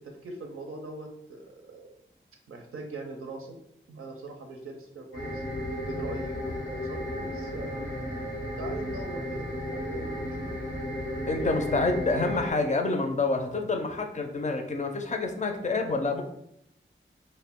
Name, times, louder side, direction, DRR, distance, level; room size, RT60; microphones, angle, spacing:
voice 1, 0.0-1.9 2.5-3.6 3.9-5.4 5.7-7.9 8.6-10.5, right 3 dB, 90° right, 2 dB, 0.4 m, -41 dB
sound 1, 5.1-12.5, left 1 dB, 90° left, 0.8 m, -34 dB
voice 2, 11.3-16.2, left 3 dB, 35° left, 4 dB, 0.4 m, -27 dB
2.2 x 2.1 x 3.5 m, 0.76 s
wide cardioid pair, 60°, 21 cm